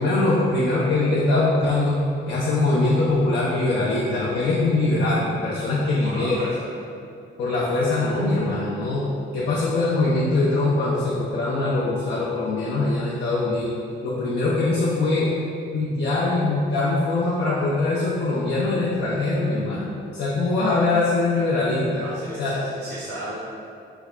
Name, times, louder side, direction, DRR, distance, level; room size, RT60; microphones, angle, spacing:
voice 1, 0.0-6.4 7.4-9.1 9.3-13.8 14.0-15.3 15.7-19.9 20.1-22.1 22.4-22.6, left 2 dB, 60° left, -6 dB, 0.5 m, -22 dB
voice 2, 6.0-6.7 22.0-23.4, right 2 dB, 85° right, -8 dB, 0.8 m, -35 dB
3.5 x 2.2 x 3.6 m, 2.4 s
cardioid pair, 110°, 20 cm